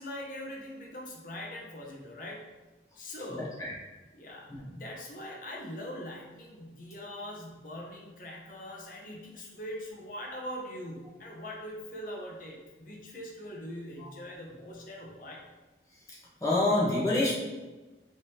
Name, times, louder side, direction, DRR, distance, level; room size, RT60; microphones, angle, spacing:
voice 1, 0.0-2.4 3.0-3.5 4.1-15.5, left 1 dB, 50° left, -2 dB, 0.7 m, -42 dB
voice 2, 3.3-3.7 4.5-4.7 14.0-14.1 16.4-17.3, left 2 dB, 20° left, -6 dB, 0.9 m, -27 dB
3.6 x 3.2 x 2.7 m, 1.2 s
head